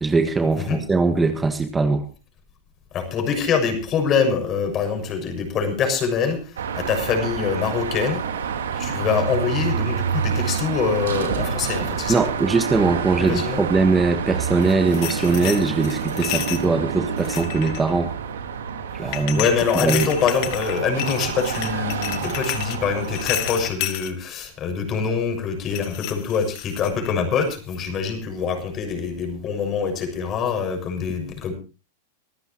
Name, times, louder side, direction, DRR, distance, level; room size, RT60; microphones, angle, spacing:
voice 1, 0.0-2.1 12.1-18.1 18.9-19.4 19.7-20.1, right 3 dB, 15° right, 7 dB, 1.6 m, -21 dB
voice 2, 2.9-8.2 8.7-12.2 13.2-13.6 19.0-31.5, left 6 dB, 35° left, 6 dB, 6.5 m, -24 dB
Car passing by / Traffic noise roadway noise / Engine, 6.6-23.7, right 7 dB, 85° right, 3.6 m, -28 dB
sound 1, 14.6-16.7 17.2-17.9 19.1-24.1 25.7-27.1 27.5-27.8, left 15 dB, 55° left, 1.9 m, -31 dB
25.0 x 14.0 x 3.0 m, 0.33 s
hypercardioid pair, 110°, 0 cm